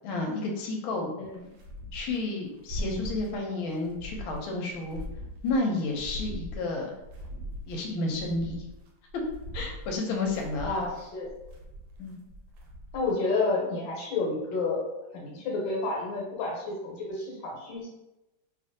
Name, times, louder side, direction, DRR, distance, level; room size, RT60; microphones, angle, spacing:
voice 1, 0.0-1.1 1.9-5.0 5.4-6.9 7.7-8.6 9.5-10.9, left 2 dB, 90° left, 1 dB, 1.4 m, -31 dB
voice 2, 1.2-1.5 2.8-3.1 10.6-11.3 12.0-12.3 12.9-14.9 15.1-17.9, left 3 dB, 70° left, -2 dB, 1.5 m, -30 dB
sound 1, 1.3-2.2 2.5-3.4 3.7-5.6 5.9-7.8 8.1-13.1, equal, 75° right, 1.3 m, -40 dB
3.2 x 2.4 x 2.6 m, 0.96 s
omnidirectional pair, 2.2 m